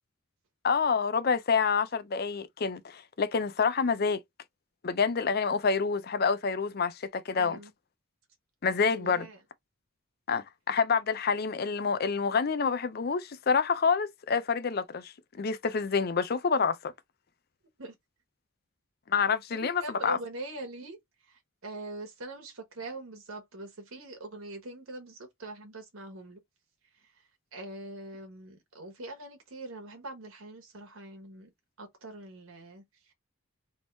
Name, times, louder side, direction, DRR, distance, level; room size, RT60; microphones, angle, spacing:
voice 1, 0.6-4.2 4.8-7.6 8.6-9.3 10.3-15.1 15.4-16.9 19.1-20.2, left 5 dB, 45° left, 0.5 m, -27 dB
voice 2, 7.3-7.7 8.9-9.4 17.8-18.0 19.5-26.4 26.9-31.5 31.8-33.1, right 2 dB, 80° right, 1.3 m, -43 dB
3.6 x 3.1 x 3.9 m
head